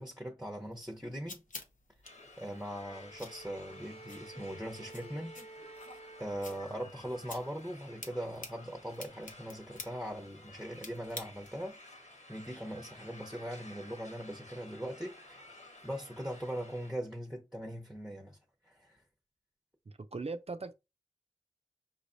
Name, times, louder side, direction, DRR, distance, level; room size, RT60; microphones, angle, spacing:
voice 1, 0.0-1.4 2.4-5.4 6.2-18.4 18.7-19.0, equal, 5° right, 0.9 m, -41 dB
sound 1, 0.7-11.7, left 3 dB, 85° left, 0.9 m, -51 dB
sound 2, 2.0-16.9, left 2 dB, 60° left, 1.3 m, -54 dB
Bowed string instrument, 2.6-7.0, right 2 dB, 40° left, 0.5 m, -52 dB
voice 2, 19.9-20.8, right 3 dB, 50° right, 0.5 m, -39 dB
5.7 x 3.2 x 2.6 m
wide cardioid pair, 65°, 13 cm